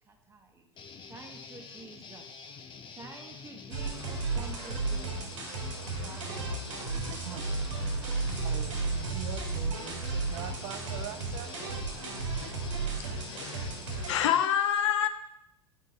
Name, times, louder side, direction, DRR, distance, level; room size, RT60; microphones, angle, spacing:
voice 1, 0.1-0.6 1.1-2.3 3.0-5.3 5.9-7.3 7.9-8.6, right 3 dB, 15° right, 1.2 m, -50 dB
Guitar, 0.8-14.5, left 5 dB, 30° left, 0.6 m, -47 dB
sound 1, 3.7-14.2, right 3 dB, 85° right, 1.6 m, -34 dB
voice 2, 8.4-11.6 13.4-13.6, right 11 dB, 65° right, 0.6 m, -42 dB
voice 3, 12.9-13.7 14.1-15.1, left 10 dB, 70° left, 0.5 m, -27 dB
7.0 x 3.7 x 4.1 m
hypercardioid pair, 90°, 16 cm